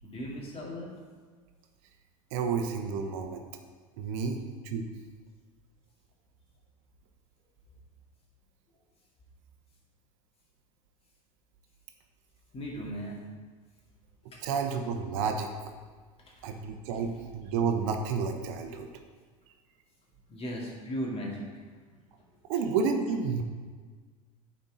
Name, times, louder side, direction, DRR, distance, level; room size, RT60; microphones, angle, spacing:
voice 1, 0.0-0.9 12.5-13.2 14.3-14.4 20.3-21.6, equal, 30° left, -2 dB, 2.1 m, -37 dB
voice 2, 2.3-3.4 4.0-4.9 14.4-15.5 16.4-18.9 22.5-23.4, right 5 dB, 65° right, 6 dB, 0.7 m, -30 dB
8.8 x 4.3 x 3.9 m, 1.5 s
hypercardioid pair, 85°, 18 cm